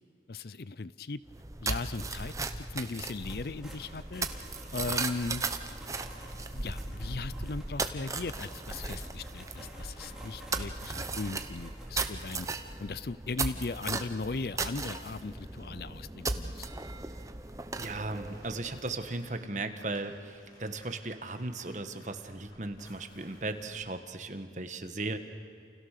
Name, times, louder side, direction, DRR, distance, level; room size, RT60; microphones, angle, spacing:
voice 1, 0.3-1.2 1.6-4.3 4.7-5.4 6.5-12.5 12.8-16.7, left 3 dB, 60° left, 17 dB, 0.6 m, -38 dB
sound 1, 1.3-19.2, right 3 dB, 20° right, 0.9 m, -37 dB
sound 2, 3.0-12.3, right 1 dB, 5° right, 4.3 m, -51 dB
voice 2, 17.8-25.2, right 2 dB, 45° right, 7 dB, 1.5 m, -37 dB
sound 3, 17.9-24.0, equal, 25° left, 7.2 m, -59 dB
29.0 x 28.5 x 6.7 m, 2.5 s
head